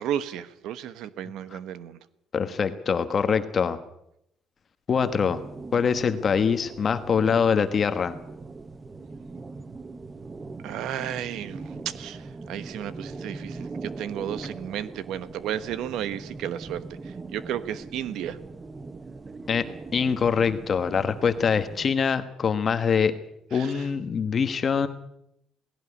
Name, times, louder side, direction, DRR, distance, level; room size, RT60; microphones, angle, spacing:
voice 1, 0.0-2.0 10.6-18.4 23.5-23.9, right 10 dB, 75° right, 14 dB, 1.2 m, -33 dB
voice 2, 2.3-3.8 4.9-5.4 5.7-8.2 19.5-19.7 19.9-23.2 23.5-24.9, left 6 dB, 30° left, 10 dB, 1.2 m, -24 dB
sound 1, 4.9-21.9, right 3 dB, 20° right, 0.8 m, -41 dB
18.5 x 17.0 x 9.7 m, 0.77 s
cardioid pair, 165°, 0 cm